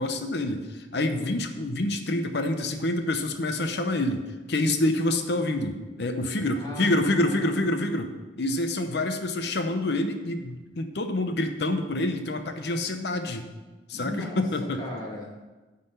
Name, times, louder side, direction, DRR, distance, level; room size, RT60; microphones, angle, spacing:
voice 1, 0.0-13.5 13.9-14.9, left 1 dB, 65° left, 7 dB, 0.8 m, -27 dB
voice 2, 1.2-1.5 6.6-7.5 13.9-14.4 14.8-15.4, left 1 dB, 25° left, -3 dB, 1.9 m, -37 dB
9.6 x 4.0 x 6.6 m, 1.2 s
head